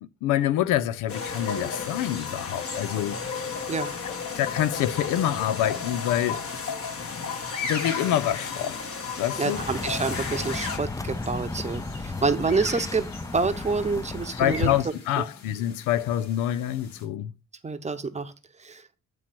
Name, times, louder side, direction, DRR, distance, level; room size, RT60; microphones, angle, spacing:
voice 1, 0.2-3.2 4.4-6.4 7.6-8.8 9.2-9.6 14.3-17.3, left 12 dB, 90° left, 0.5 m, -26 dB
sound 1, 1.1-10.8, left 5 dB, 50° left, 1.3 m, -33 dB
sound 2, 7.2-17.0, left 4 dB, 65° left, 2.1 m, -40 dB
voice 2, 9.4-13.1 13.3-14.7 15.2-15.3 17.6-18.3 18.6-18.8, right 4 dB, 20° right, 0.8 m, -27 dB
sound 3, 9.5-14.8, left 3 dB, 10° left, 0.5 m, -35 dB
8.8 x 3.1 x 5.8 m
cardioid pair, 90°, 30 cm